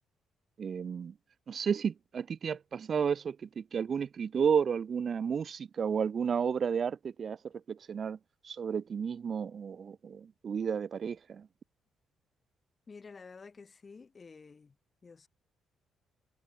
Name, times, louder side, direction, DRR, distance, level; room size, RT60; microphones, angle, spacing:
voice 1, 0.6-1.1 1.5-8.2 8.4-11.5, right 7 dB, 50° right, 0.7 m, -32 dB
voice 2, 12.9-14.8 15.0-15.3, left 4 dB, 35° left, 6.4 m, -51 dB
cardioid pair, 90°, 0 cm